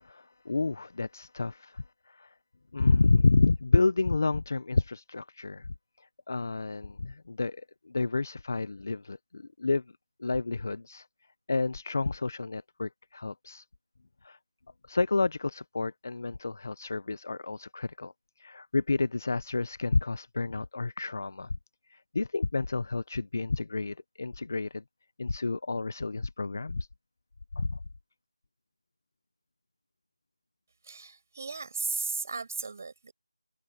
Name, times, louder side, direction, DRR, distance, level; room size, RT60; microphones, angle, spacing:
voice 1, 0.0-2.3 2.7-5.7 6.0-9.8 10.2-11.1 11.5-13.7 14.2-14.4 14.9-18.1 18.4-21.5 21.9-24.8 25.2-26.9 27.5-27.8, left 3 dB, 30° left, 0.5 m, -29 dB
voice 2, 30.8-33.1, right 4 dB, 30° right, 5.1 m, -35 dB
figure-of-eight pair, 180°, 3 cm